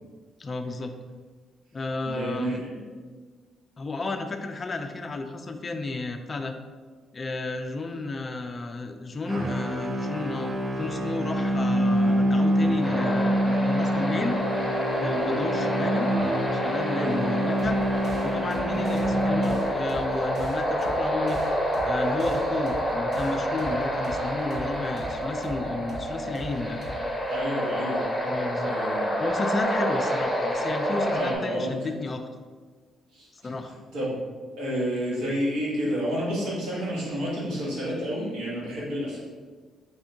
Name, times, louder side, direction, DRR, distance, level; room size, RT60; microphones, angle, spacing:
voice 1, 0.4-0.9 1.7-2.6 3.8-6.6 7.1-14.4 15.0-16.1 16.5-17.8 18.2-21.4 21.8-26.8 28.2-28.8 29.2-32.3 33.4-33.8, left 3 dB, 35° left, 5 dB, 0.3 m, -32 dB
voice 2, 2.0-2.8 16.9-17.2 27.3-28.0 28.6-29.1 31.1-31.9 33.1-33.3 33.9-34.2 34.6-39.2, equal, 90° right, -6 dB, 1.2 m, -30 dB
sound 1, 9.2-20.0, equal, 40° right, 0.5 m, -26 dB
sound 2, 12.8-31.4, equal, 10° left, 0.8 m, -28 dB
sound 3, 17.6-28.7, equal, 70° right, 0.8 m, -42 dB
3.6 x 3.4 x 2.6 m, 1.5 s
cardioid pair, 90°, 0 cm